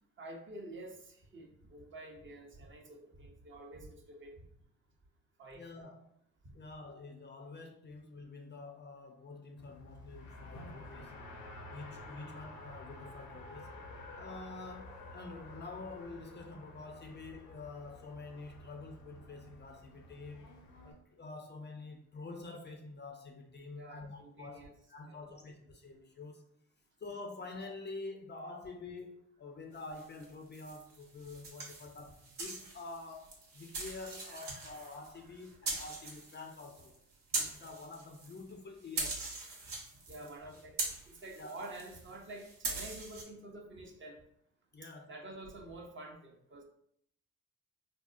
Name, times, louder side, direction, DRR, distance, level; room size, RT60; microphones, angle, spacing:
voice 1, 0.2-4.3 5.4-5.6 23.7-24.7 25.1-25.4 40.1-40.8 41.1-44.2 45.1-46.6, right 1 dB, 35° right, 2 dB, 0.6 m, -48 dB
voice 2, 5.5-6.0 6.5-11.2 11.7-13.7 14.2-20.5 20.8-26.5 27.0-36.9 37.4-39.3 40.2-40.3 41.3-41.5 44.7-45.2, left 3 dB, 30° left, 4 dB, 0.5 m, -47 dB
Race car auto racing, 9.6-20.9, left 2 dB, 75° left, 0.7 m, -51 dB
sound 1, 29.9-38.5 38.8-43.2, right 3 dB, 65° right, 0.9 m, -42 dB
3.4 x 2.1 x 2.5 m, 0.71 s
hypercardioid pair, 55°, 36 cm